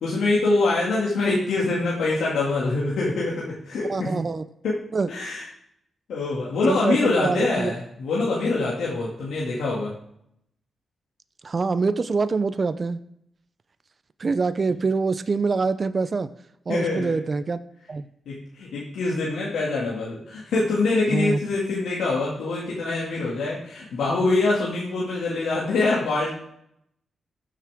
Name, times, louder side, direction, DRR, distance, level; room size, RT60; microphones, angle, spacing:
voice 1, 0.0-4.1 4.6-4.8 5.1-5.5 6.1-9.9 16.7-17.2 18.3-26.3, left 3 dB, 90° left, -5 dB, 2.3 m, -24 dB
voice 2, 3.9-4.4 4.9-5.1 6.7-7.7 11.4-13.0 14.2-16.3 16.7-17.6 17.9-18.1 21.1-21.4, right 4 dB, 40° right, 12 dB, 0.6 m, -25 dB
14.0 x 7.4 x 3.6 m, 0.75 s
cardioid pair, 75°, 0 cm